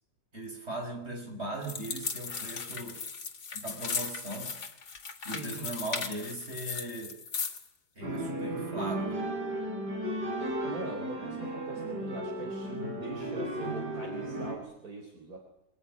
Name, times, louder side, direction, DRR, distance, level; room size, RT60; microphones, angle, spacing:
voice 1, 0.3-3.0 3.5-4.6 5.2-7.2 8.0-9.3, right 1 dB, 40° right, 4 dB, 5.7 m, -39 dB
sound 1, 1.6-7.7, left 5 dB, 70° left, 2.5 m, -37 dB
voice 2, 5.2-5.6 10.6-15.4, right 2 dB, 60° right, 2 dB, 4.6 m, -42 dB
sound 2, 8.0-14.6, right 1 dB, 75° right, 5.0 m, -35 dB
25.0 x 20.5 x 9.7 m, 0.85 s
omnidirectional pair, 1.8 m